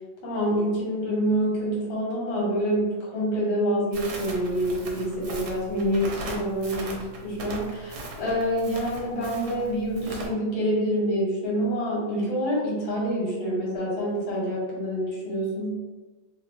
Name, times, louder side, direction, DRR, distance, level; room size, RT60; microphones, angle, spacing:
voice 1, 0.2-15.7, equal, 80° left, -5 dB, 1.8 m, -27 dB
Crackle, 3.9-10.3, right 2 dB, 65° right, 1.1 m, -39 dB
3.1 x 2.9 x 2.6 m, 1.2 s
omnidirectional pair, 2.1 m